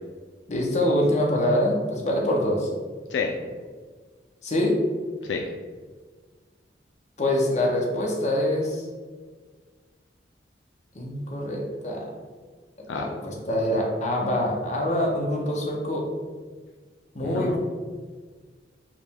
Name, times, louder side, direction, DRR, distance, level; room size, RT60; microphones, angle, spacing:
voice 1, 0.5-2.7 4.4-4.8 7.2-8.8 10.9-12.0 12.8-16.1 17.1-17.6, left 1 dB, 40° left, -1 dB, 0.8 m, -25 dB
voice 2, 17.2-17.6, left 4 dB, 75° left, 2 dB, 0.3 m, -29 dB
4.8 x 2.2 x 3.5 m, 1.5 s
head